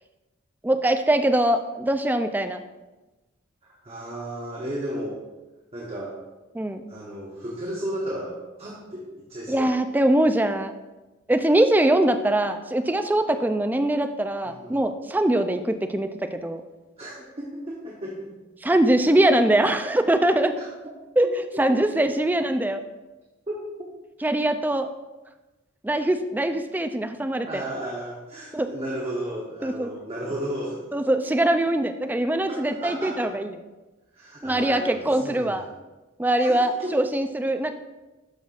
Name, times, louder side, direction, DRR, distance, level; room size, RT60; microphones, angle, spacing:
voice 1, 0.6-2.6 6.5-6.8 9.5-10.7 11.3-16.6 18.6-20.6 21.2-21.3 21.6-22.8 24.2-24.9 25.8-27.6 28.5-28.7 29.6-29.9 30.9-33.5 34.4-35.6 36.2-37.8, right 1 dB, 10° right, 7 dB, 0.3 m, -22 dB
voice 2, 3.6-5.2 5.7-6.2 6.9-9.7 14.5-14.8 17.0-18.3 20.6-20.7 21.0-21.1 21.5-21.6 23.5-23.7 27.5-30.9 32.5-33.3 34.1-35.7 36.4-37.0, right 1 dB, 30° right, -3 dB, 0.9 m, -34 dB
12.0 x 5.5 x 2.4 m, 1.1 s
head